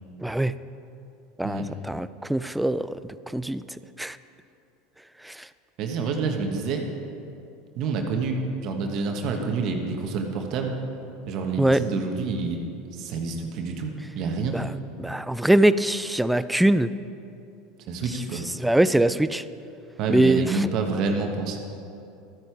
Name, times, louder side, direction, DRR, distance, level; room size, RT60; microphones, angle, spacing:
voice 1, 0.2-0.5 1.4-3.6 4.0-4.2 5.2-5.5 11.6-11.8 14.5-14.7 15.0-16.9 18.6-19.4 20.1-20.7, right 1 dB, 5° right, 14 dB, 0.4 m, -22 dB
voice 2, 5.8-6.9 7.7-10.8 11.3-12.6 12.9-14.6 17.8-18.4 20.0-21.6, right 4 dB, 55° right, 3 dB, 1.3 m, -28 dB
13.0 x 9.7 x 4.7 m, 2.7 s
hypercardioid pair, 100°, 0 cm